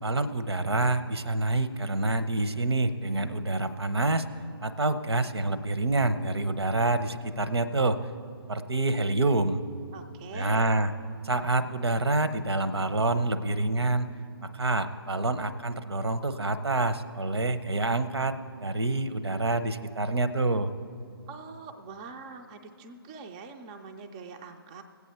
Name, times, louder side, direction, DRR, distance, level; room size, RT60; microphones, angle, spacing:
voice 1, 0.0-4.3 4.6-8.0 8.5-9.6 10.3-10.9 11.2-14.1 14.4-20.7, right 2 dB, 80° right, 12 dB, 0.8 m, -27 dB
voice 2, 9.9-10.7 21.3-24.8, right 5 dB, 15° right, 5 dB, 0.4 m, -43 dB
18.5 x 8.3 x 4.3 m, 2.5 s
figure-of-eight pair, 145°, 13 cm